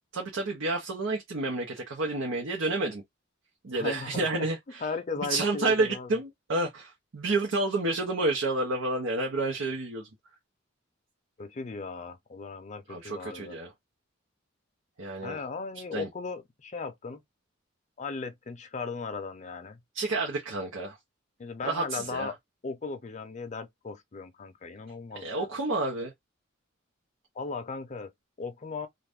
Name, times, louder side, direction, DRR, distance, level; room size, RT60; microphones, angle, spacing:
voice 1, 0.1-3.0 3.6-4.8 5.3-10.1 12.9-13.7 15.0-15.4 15.9-16.1 19.9-21.0 21.6-22.3 25.1-26.1, right 2 dB, 80° right, 0.8 m, -30 dB
voice 2, 3.7-4.5 4.8-6.1 11.4-13.6 15.2-17.2 18.0-19.8 21.4-22.3 22.6-25.5 27.4-28.1 28.4-28.9, left 4 dB, 35° left, 0.5 m, -37 dB
2.6 x 2.4 x 3.4 m
head